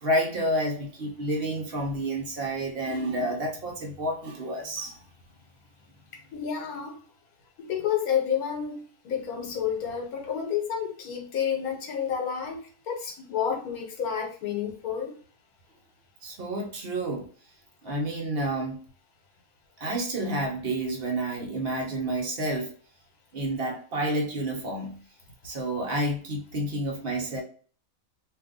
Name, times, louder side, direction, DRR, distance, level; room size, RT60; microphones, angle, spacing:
voice 1, 0.0-5.0 16.2-17.3 17.8-18.8 19.8-22.7 23.3-24.9 25.4-27.4, right 1 dB, 45° right, 0.8 m, -29 dB
voice 2, 6.3-7.0 7.6-15.2, left 8 dB, 70° left, 1.3 m, -30 dB
2.7 x 2.5 x 3.5 m
omnidirectional pair, 1.7 m